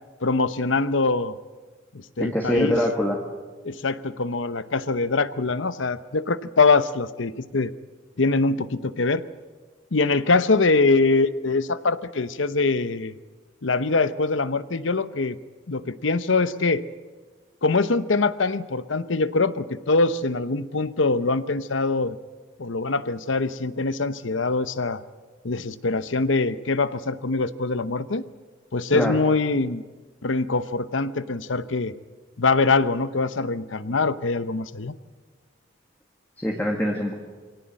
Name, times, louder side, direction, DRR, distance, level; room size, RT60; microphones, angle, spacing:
voice 1, 0.2-1.3 2.2-2.8 3.6-7.7 8.2-9.2 9.9-13.1 13.6-15.4 15.7-16.8 17.6-22.2 22.6-25.0 25.4-28.2 28.7-29.8 30.2-31.9 32.4-34.9, left 3 dB, 85° left, 14 dB, 0.9 m, -23 dB
voice 2, 2.2-3.2 28.9-29.2 36.4-37.2, left 1 dB, 10° left, -1 dB, 1.9 m, -24 dB
24.0 x 17.5 x 7.7 m, 1.4 s
head